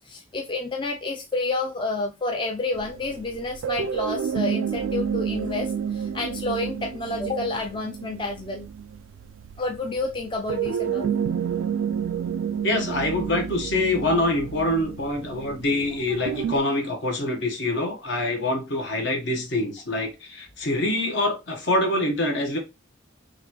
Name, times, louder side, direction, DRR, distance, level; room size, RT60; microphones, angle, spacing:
voice 1, 0.1-8.7 9.6-11.1 14.0-14.2, left 2 dB, 25° left, 0.4 m, -29 dB
sound 1, 2.7-16.6, right 7 dB, 85° right, 0.3 m, -30 dB
voice 2, 12.6-22.6, left 2 dB, 60° left, 1.1 m, -25 dB
3.9 x 3.0 x 3.0 m
head